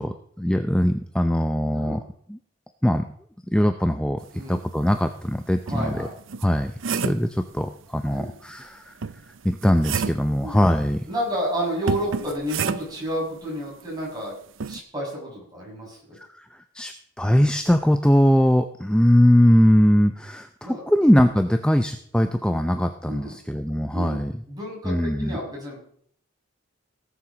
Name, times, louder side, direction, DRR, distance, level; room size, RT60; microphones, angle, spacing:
voice 1, 0.0-2.0 2.3-2.4 2.8-3.0 3.5-6.1 6.4-8.9 9.4-11.1 16.2-24.4 24.9-25.4, equal, 5° left, 8 dB, 0.5 m, -21 dB
voice 2, 1.6-2.0 4.3-4.6 5.7-6.1 8.1-8.3 10.4-10.6 11.1-14.3 14.7-16.0 20.6-20.8 23.0-23.3 23.9-24.2 24.5-25.8, equal, 20° right, -3 dB, 6.1 m, -30 dB
sound 1, 5.1-5.2 5.7-7.3 9.0-10.3 11.9-13.1 14.6-14.8, right 5 dB, 75° right, 0.6 m, -29 dB
17.5 x 7.2 x 6.2 m, 0.63 s
head